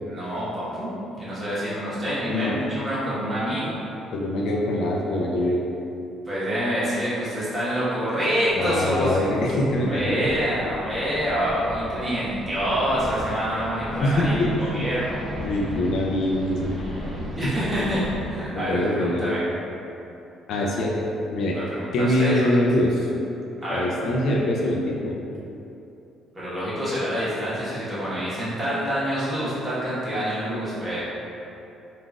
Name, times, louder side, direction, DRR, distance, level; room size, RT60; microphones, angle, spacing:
voice 1, 0.0-3.8 6.2-15.3 17.3-19.4 21.5-22.5 23.6-23.9 26.3-31.0, equal, 20° right, -11 dB, 1.1 m, -27 dB
voice 2, 4.1-5.6 8.5-10.3 14.0-14.8 15.4-16.7 18.7-19.2 20.5-20.9 21.3-21.6 21.9-23.1 23.7-25.1, left 1 dB, 65° left, -2 dB, 0.4 m, -23 dB
sound 1, 8.5-18.2, equal, 20° left, 1.2 m, -36 dB
3.7 x 2.4 x 2.3 m, 2.8 s
cardioid pair, 120°, 0 cm